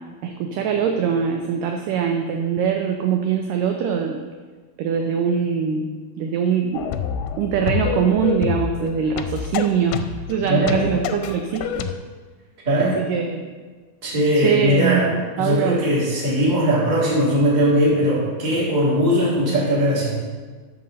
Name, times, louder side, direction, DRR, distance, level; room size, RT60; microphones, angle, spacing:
voice 1, 0.2-4.2 4.8-5.9 6.2-6.9 7.4-11.9 13.0-13.5 14.4-15.8 19.2-19.3, right 7 dB, 80° right, 3 dB, 2.0 m, -22 dB
sound 1, 6.7-11.9, left 8 dB, 90° left, 2.6 m, -27 dB
voice 2, 10.5-10.9 12.6-13.0 14.0-20.2, equal, 15° right, -6 dB, 1.8 m, -20 dB
9.7 x 5.4 x 6.5 m, 1.4 s
omnidirectional pair, 4.5 m